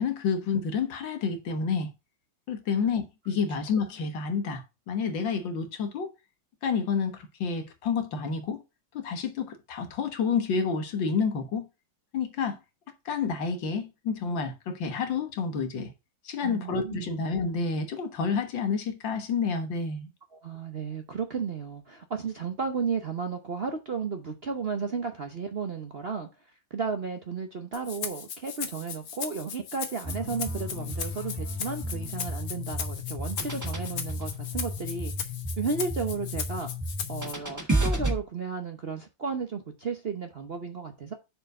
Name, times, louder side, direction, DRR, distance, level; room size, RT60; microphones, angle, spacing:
voice 1, 0.0-1.9 2.5-6.1 6.6-8.6 8.9-11.7 12.1-12.6 13.1-15.9 16.3-20.1, left 5 dB, 75° left, 2.0 m, -29 dB
voice 2, 16.4-17.1 20.3-26.3 26.7-35.1 35.6-36.7 37.1-41.1, right 5 dB, 45° right, 0.8 m, -33 dB
Rattle (instrument), 27.7-37.3, left 7 dB, 55° left, 1.3 m, -38 dB
sound 1, 30.0-38.1, equal, 10° right, 1.5 m, -32 dB
6.7 x 4.6 x 6.4 m
omnidirectional pair, 2.1 m